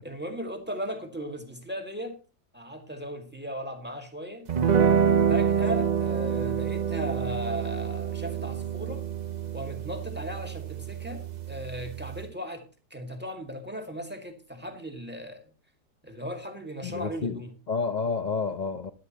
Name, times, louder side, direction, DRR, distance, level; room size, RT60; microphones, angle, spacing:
voice 1, 0.0-2.2 2.5-4.5 5.3-9.1 9.5-15.5 16.0-17.6, equal, 5° right, 1.8 m, -37 dB
sound 1, 4.5-12.2, right 7 dB, 75° right, 0.4 m, -27 dB
voice 2, 16.8-17.4 17.7-18.9, left 5 dB, 75° left, 0.4 m, -29 dB
15.0 x 11.0 x 2.9 m
omnidirectional pair, 1.8 m